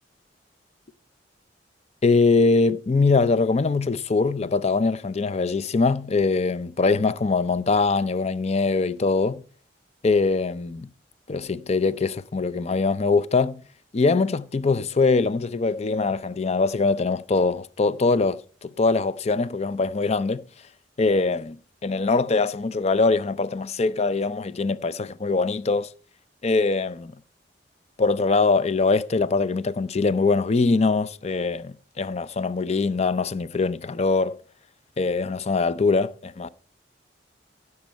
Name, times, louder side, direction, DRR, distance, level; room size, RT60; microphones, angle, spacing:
voice 1, 2.0-9.4 10.0-10.9 11.3-13.6 13.9-20.4 21.0-25.9 26.4-27.1 28.0-34.4 35.0-36.5, left 3 dB, 35° left, 0.5 m, -22 dB
15.5 x 6.7 x 4.5 m
head